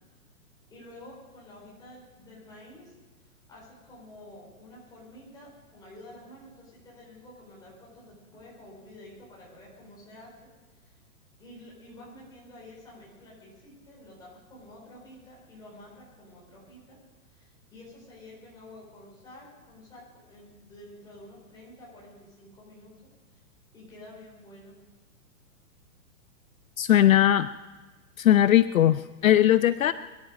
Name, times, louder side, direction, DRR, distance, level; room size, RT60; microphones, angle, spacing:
voice 1, 0.7-2.9 3.5-10.5 11.4-17.0 17.3-22.9 23.7-24.7, left 1 dB, 10° left, -5 dB, 4.4 m, -49 dB
voice 2, 26.8-27.5 28.2-29.9, left 12 dB, 65° left, 13 dB, 0.6 m, -19 dB
23.0 x 12.0 x 5.1 m, 1.3 s
hypercardioid pair, 175°, 44 cm